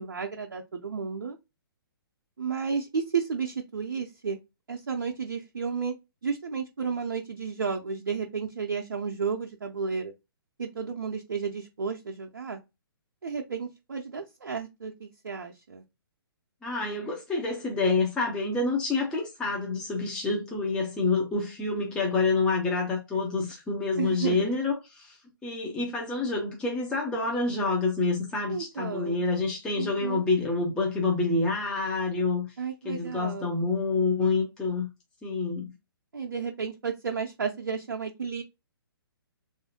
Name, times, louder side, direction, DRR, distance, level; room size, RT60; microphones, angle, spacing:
voice 1, 0.0-1.4 2.4-4.4 4.7-5.9 6.2-10.1 10.6-12.6 13.2-15.8 24.0-24.4 28.5-29.2 29.8-30.2 32.6-33.6 36.1-38.4, right 5 dB, 60° right, 0.5 m, -32 dB
voice 2, 16.6-32.5 32.8-34.9 35.2-35.7, left 3 dB, 5° left, 0.5 m, -27 dB
3.3 x 2.4 x 2.7 m
figure-of-eight pair, 125°, 12 cm